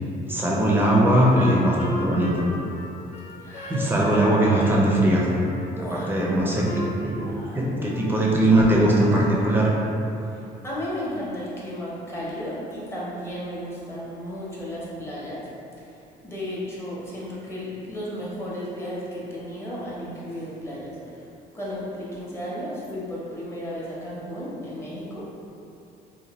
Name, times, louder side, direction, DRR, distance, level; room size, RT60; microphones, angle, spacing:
voice 1, 0.3-2.3 3.7-5.3 5.8-6.7 7.0-7.2 7.5-9.7, right 1 dB, 10° right, -4 dB, 0.5 m, -20 dB
Wind instrument woodwind instrument, 0.9-4.3 4.6-5.7 6.2-7.5 7.8-8.2, left 1 dB, 45° left, 0.4 m, -35 dB
voice 2, 3.4-3.9 5.6-6.1 7.0-7.8 10.3-15.4 16.2-21.2 21.5-25.2, equal, 15° left, -8 dB, 0.8 m, -34 dB
2.7 x 2.2 x 3.0 m, 2.7 s
cardioid pair, 110°, 17 cm